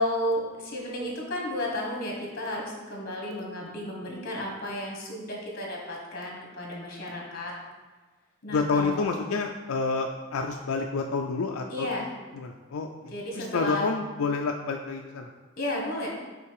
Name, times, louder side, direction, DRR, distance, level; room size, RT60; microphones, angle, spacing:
voice 1, 0.0-7.5 8.4-9.0 11.7-12.1 13.1-13.9 15.6-16.1, left 1 dB, 45° left, -1 dB, 1.6 m, -32 dB
voice 2, 8.5-11.9 12.4-12.9 13.4-15.3, left 4 dB, 80° left, 3 dB, 0.4 m, -28 dB
5.7 x 4.4 x 4.8 m, 1.3 s
head